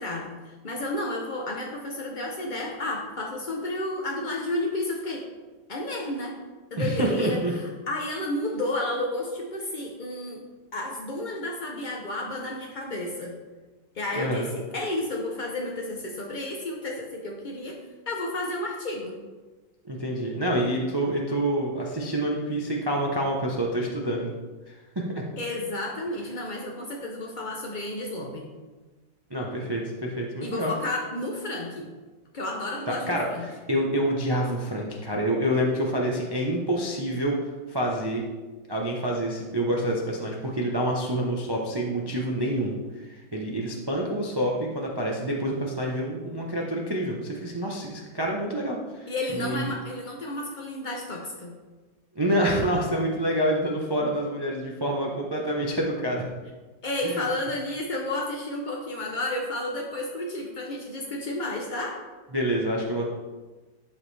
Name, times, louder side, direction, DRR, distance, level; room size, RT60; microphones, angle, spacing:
voice 1, 0.0-5.2 5.7-6.3 6.7-10.4 10.7-13.3 13.9-17.8 18.1-19.2 25.4-28.5 30.4-31.9 32.3-33.4 49.1-51.5 56.8-62.0, left 1 dB, 60° left, -1 dB, 0.5 m, -31 dB
voice 2, 6.8-7.5 14.2-14.5 19.8-24.3 24.7-24.8 25.1-25.2 29.3-30.7 32.9-37.4 37.7-38.2 38.7-49.7 52.2-56.2 57.0-57.2 62.3-63.1, right 1 dB, 40° right, -1 dB, 0.3 m, -27 dB
11.5 x 5.3 x 3.3 m, 1.3 s
omnidirectional pair, 2.1 m